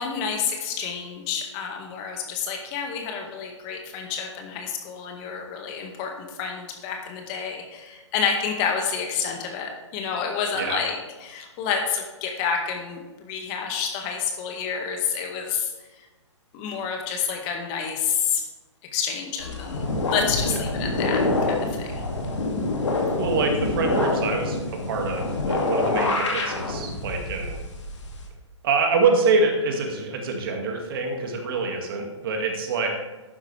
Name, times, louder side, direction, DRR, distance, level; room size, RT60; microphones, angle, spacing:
voice 1, 0.0-16.0 16.5-18.4 18.9-22.0, left 6 dB, 30° left, 3 dB, 1.8 m, -29 dB
sound 1, 19.4-28.3, left 2 dB, 70° left, 2.5 m, -26 dB
voice 2, 23.2-27.6 28.6-32.9, right 4 dB, 50° right, 2 dB, 2.2 m, -25 dB
12.0 x 9.6 x 3.4 m, 1.2 s
figure-of-eight pair, 125°, 16 cm